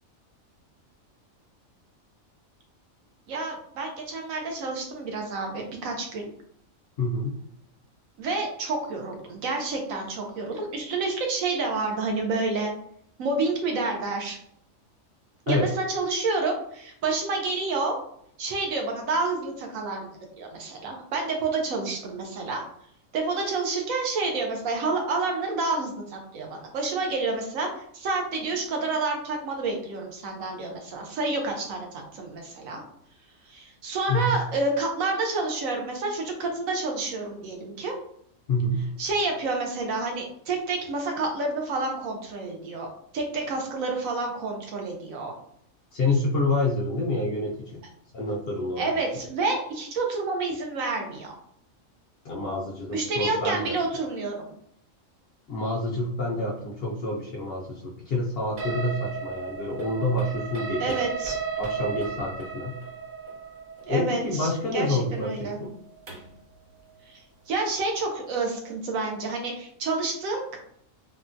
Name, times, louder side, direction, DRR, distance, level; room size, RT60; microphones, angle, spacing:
voice 1, 3.3-6.3 8.2-12.7 13.2-14.4 15.5-18.0 18.4-20.1 20.4-22.6 23.1-32.8 33.5-37.9 39.0-42.9 43.1-45.3 48.8-51.3 52.9-54.5 60.8-61.4 63.8-65.6 67.1-67.2 67.5-70.6, right 3 dB, 75° right, 1 dB, 1.1 m, -29 dB
voice 2, 7.0-7.3 15.5-15.7 34.1-34.4 38.5-38.9 45.9-47.8 48.1-48.9 52.2-53.8 55.5-61.0 61.6-62.8 63.9-65.7, left 2 dB, 60° left, -2 dB, 0.7 m, -27 dB
sound 1, 58.6-66.4, right 5 dB, 50° right, 0.6 m, -35 dB
3.5 x 2.1 x 2.6 m, 0.68 s
omnidirectional pair, 1.4 m